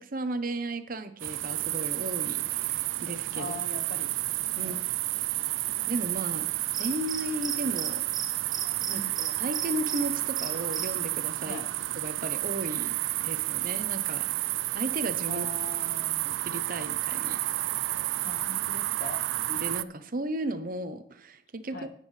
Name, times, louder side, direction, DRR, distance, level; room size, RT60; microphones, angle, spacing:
voice 1, 0.0-3.5 4.6-4.8 5.9-6.5 6.8-8.0 8.9-11.6 12.0-14.3 14.7-15.5 16.3-17.4 19.5-21.9, right 1 dB, 45° right, 10 dB, 0.8 m, -35 dB
sound 1, 1.2-19.8, right 17 dB, 80° right, 0.4 m, -31 dB
voice 2, 3.3-4.1 4.5-4.8 8.9-9.2 11.4-11.7 15.3-16.3 18.2-19.2 21.7-21.9, left 3 dB, 50° left, 6 dB, 1.1 m, -41 dB
Cricket, 6.7-7.9 8.1-8.3 8.5-10.0 10.4-10.9, right 5 dB, 20° right, 1.2 m, -37 dB
12.0 x 9.3 x 3.3 m, 0.62 s
head